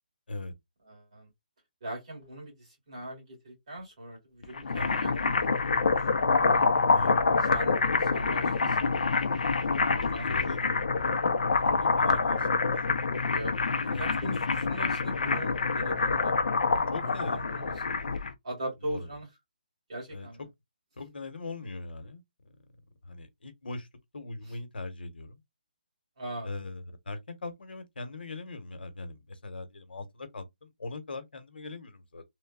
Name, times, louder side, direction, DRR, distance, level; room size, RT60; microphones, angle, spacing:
voice 1, 0.9-1.3 1.8-6.7 7.5-9.0 9.4-11.0 13.3-13.6 13.9-16.3 17.3-17.7 18.4-19.3 19.9-20.4 26.2-26.5, right 1 dB, 35° right, 1.9 m, -41 dB
sound 1, 4.4-18.3, left 4 dB, 55° left, 0.5 m, -26 dB
voice 2, 10.2-10.6 11.5-12.7 13.9-14.7 16.9-17.5 18.8-19.1 20.1-20.3 21.0-22.7 23.0-23.9 24.1-25.4 26.4-32.2, left 3 dB, 85° left, 1.0 m, -40 dB
3.2 x 2.2 x 2.3 m
hypercardioid pair, 180°, 5 cm